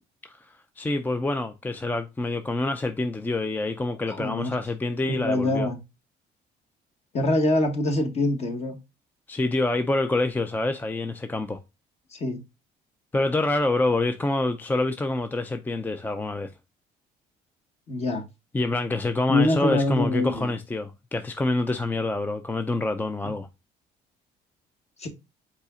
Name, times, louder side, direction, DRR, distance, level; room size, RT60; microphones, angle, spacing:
voice 1, 0.8-5.7 9.3-11.6 13.1-16.5 18.5-23.5, left 2 dB, 10° left, 0.4 m, -26 dB
voice 2, 4.1-4.6 5.1-5.8 7.1-8.8 12.1-12.4 17.9-18.2 19.3-20.5 25.0-25.1, left 2 dB, 40° left, 1.4 m, -24 dB
5.4 x 4.1 x 2.4 m
cardioid pair, 110°, 17 cm